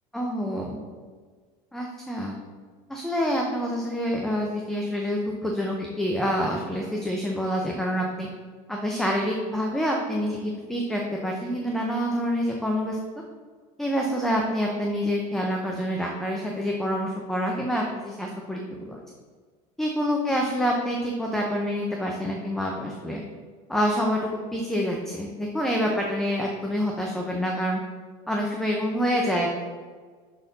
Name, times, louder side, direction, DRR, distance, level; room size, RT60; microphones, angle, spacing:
voice 1, 0.1-0.8 1.7-2.4 2.9-8.3 8.7-13.0 13.8-19.0 19.8-23.2 23.7-24.2 24.5-27.8 28.3-29.5, equal, ahead, -1 dB, 0.5 m, -27 dB
6.9 x 4.2 x 3.9 m, 1.5 s
cardioid pair, 155°, 16 cm